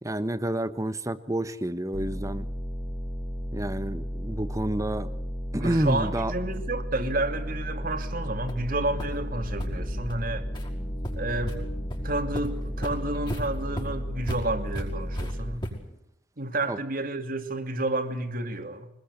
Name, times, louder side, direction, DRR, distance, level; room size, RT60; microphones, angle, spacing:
voice 1, 0.0-2.5 3.5-5.1 5.5-6.3 16.6-16.8, right 1 dB, 15° right, 1.2 m, -29 dB
sound 1, 1.9-15.6, equal, 10° left, 2.5 m, -34 dB
voice 2, 5.6-10.5 11.1-11.7 12.0-15.7 16.4-18.9, right 2 dB, 50° right, 2.8 m, -30 dB
sound 2, 8.0-8.1 8.5-8.7 9.0-9.1 9.6-9.7 10.1-10.2 10.5-10.7 11.0-11.6 11.9-12.0 12.3-16.0, equal, 25° left, 5.5 m, -36 dB
sound 3, 8.8-14.2, left 1 dB, 50° left, 3.0 m, -42 dB
25.0 x 21.0 x 8.6 m
head